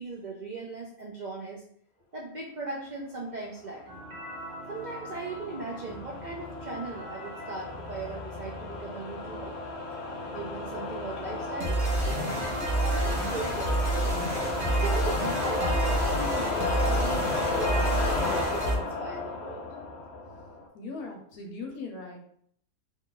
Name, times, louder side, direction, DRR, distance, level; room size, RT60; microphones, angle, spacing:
voice 1, 0.0-1.6 2.1-3.8 4.7-9.6 10.3-13.9 14.7-19.7, right 2 dB, 85° right, -3 dB, 0.4 m, -38 dB
sound 1, 3.9-18.8, right 1 dB, 45° right, 0.7 m, -32 dB
sound 2, 4.2-20.7, left 3 dB, 50° left, 0.9 m, -33 dB
voice 2, 20.7-22.2, left 3 dB, 75° left, 1 dB, 1.3 m, -39 dB
3.1 x 2.4 x 3.8 m, 0.64 s
omnidirectional pair, 1.6 m